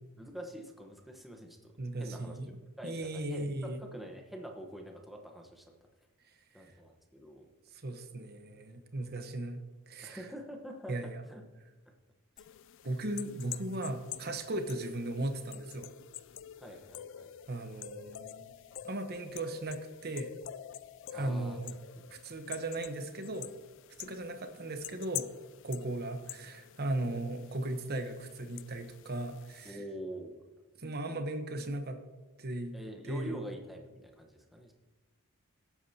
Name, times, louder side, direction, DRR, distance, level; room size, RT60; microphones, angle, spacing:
voice 1, 0.2-1.7 2.0-2.4 2.8-5.7 6.5-7.5 8.6-8.7 9.0-9.2 10.0-11.4 11.9-12.0 16.6-17.4 21.1-21.6 22.0-22.1 29.6-30.4 32.7-34.7, equal, ahead, 2 dB, 1.0 m, -46 dB
voice 2, 1.8-2.5 2.8-3.8 6.6-6.7 7.7-10.3 10.9-11.2 12.8-15.9 17.5-18.5 18.8-20.3 21.1-21.8 22.1-23.5 24.0-25.3 25.6-29.8 30.8-32.0 32.4-32.8 33.1-33.4, right 1 dB, 45° right, 7 dB, 1.0 m, -37 dB
sound 1, 12.4-29.7, left 12 dB, 55° left, 0.3 m, -47 dB
17.0 x 8.6 x 2.8 m, 1.2 s
head